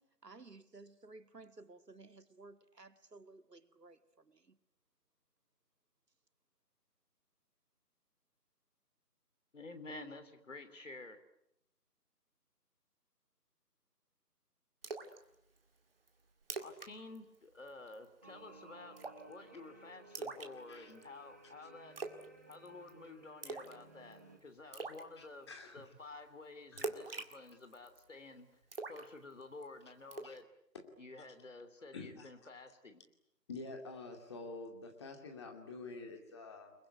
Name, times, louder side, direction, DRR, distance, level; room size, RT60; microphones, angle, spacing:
voice 1, 0.0-4.5, right 3 dB, 75° right, 2.3 m, -56 dB
voice 2, 9.5-11.2 16.6-19.0 19.3-22.0 22.5-28.5 28.9-30.5 31.0-33.0, left 2 dB, 50° left, 3.5 m, -51 dB
Splash splatter, 14.8-15.2 15.6-15.7 16.1-16.2 16.4-16.9 17.1-17.4 17.7-18.0 19.0-19.3 20.1-21.0 22.0-22.3 22.5-22.9 23.4-23.8 24.1-24.2 24.7-25.0 26.8-28.0 28.7-29.6 30.1-30.4, right 3 dB, 35° right, 2.2 m, -43 dB
sound 1, 18.2-24.4, right 2 dB, 10° right, 1.2 m, -59 dB
voice 3, 25.2-25.8 26.7-27.0 30.2-30.3 30.7-30.8 31.9-32.3 33.5-36.7, left 3 dB, 15° left, 2.6 m, -48 dB
29.5 x 21.0 x 9.2 m
figure-of-eight pair, 165°, 48 cm